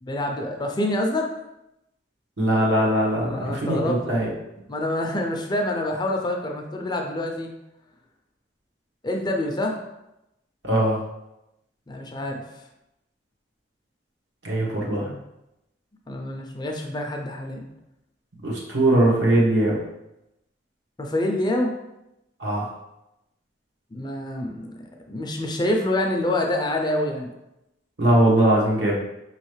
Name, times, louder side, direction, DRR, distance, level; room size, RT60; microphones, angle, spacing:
voice 1, 0.0-1.3 3.2-4.3 4.7-7.5 9.0-9.8 11.9-12.6 14.7-15.2 16.1-17.6 21.0-21.7 23.9-24.8 25.1-27.3, left 1 dB, 20° left, 2 dB, 0.5 m, -27 dB
voice 2, 2.4-4.3 10.6-11.0 14.4-15.1 18.4-19.8 22.4-22.7 28.0-28.9, right 1 dB, 70° right, -4 dB, 1.3 m, -20 dB
5.2 x 3.1 x 3.2 m, 0.89 s
head